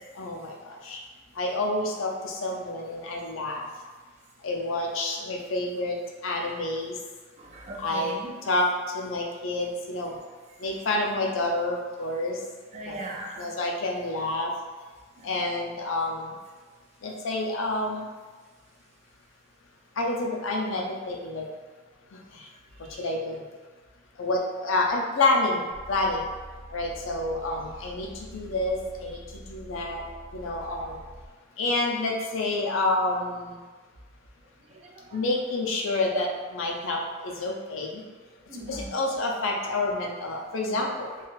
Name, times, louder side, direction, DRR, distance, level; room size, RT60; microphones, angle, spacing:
voice 1, 0.2-0.5 0.8-1.0 1.4-3.6 4.4-6.0 6.2-7.0 7.8-8.1 8.5-8.7 8.9-10.1 10.6-12.4 12.9-13.0 13.4-14.5 15.2-16.3 17.0-18.1 20.0-21.4 23.0-23.4 24.2-26.2 26.7-29.2 29.5-30.0 30.3-31.0 31.6-33.6 35.1-38.0 38.7-41.1, left 2 dB, 75° left, -1 dB, 0.5 m, -28 dB
voice 2, 7.4-8.3 12.7-13.5 34.7-35.0 38.5-38.9, right 1 dB, 35° right, 0 dB, 0.3 m, -38 dB
sound 1, 25.7-31.3, right 1 dB, 60° right, 0.9 m, -46 dB
2.4 x 2.3 x 3.1 m, 1.3 s
head